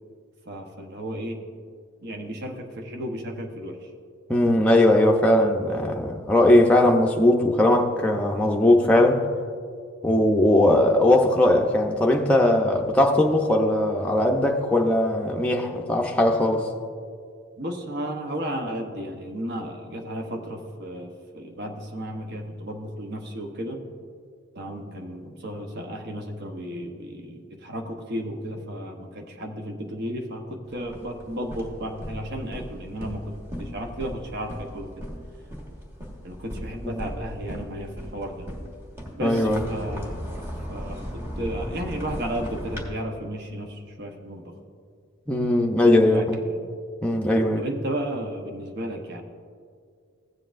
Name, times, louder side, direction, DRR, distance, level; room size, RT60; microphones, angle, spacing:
voice 1, 0.5-1.4 2.0-3.9 17.6-23.8 24.5-35.1 36.2-38.5 39.2-40.2 40.7-44.6 46.0-46.7 47.5-49.2, right 1 dB, 50° right, 0.9 m, -34 dB
voice 2, 4.3-9.2 10.0-16.7 36.8-37.0 39.2-39.6 45.3-46.4 47.0-47.6, left 1 dB, 5° left, 0.6 m, -19 dB
sound 1, 30.7-42.8, equal, 10° right, 1.3 m, -37 dB
16.0 x 7.6 x 2.5 m
head